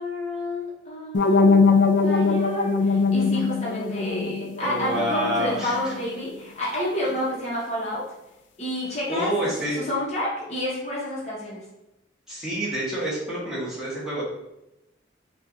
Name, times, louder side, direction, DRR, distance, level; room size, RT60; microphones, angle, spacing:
voice 1, 0.0-1.6 2.0-8.1 8.6-9.3 9.7-11.6, left 1 dB, 35° left, -6 dB, 0.9 m, -29 dB
soft rubber, 1.1-6.1, left 4 dB, 70° left, 0.4 m, -22 dB
voice 2, 4.6-5.9 9.1-9.8 12.3-14.2, equal, 5° right, -8 dB, 1.2 m, -28 dB
5.4 x 2.4 x 2.6 m, 0.91 s
head